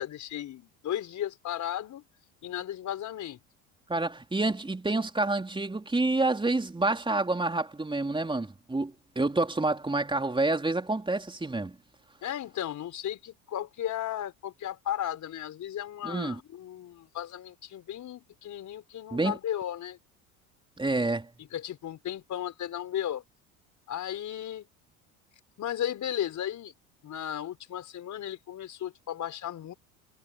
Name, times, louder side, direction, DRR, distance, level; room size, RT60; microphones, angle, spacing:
voice 1, 0.0-2.0 2.4-3.4 12.2-20.0 21.5-23.2 23.9-24.7 25.6-26.7 27.0-29.7, left 11 dB, 50° left, 4.9 m, -35 dB
voice 2, 3.9-11.8 16.0-16.4 19.1-19.3 20.8-21.3, right 2 dB, 15° right, 4.2 m, -28 dB
hypercardioid pair, 80°, 38 cm